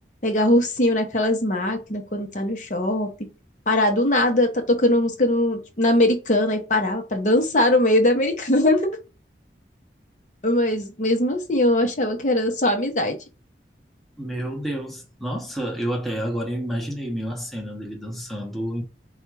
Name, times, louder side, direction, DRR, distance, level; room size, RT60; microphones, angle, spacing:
voice 1, 0.2-3.1 3.7-8.9 10.4-13.2, left 1 dB, 45° left, 0.9 m, -21 dB
voice 2, 14.2-18.8, equal, ahead, 0.8 m, -29 dB
4.3 x 2.4 x 4.6 m
head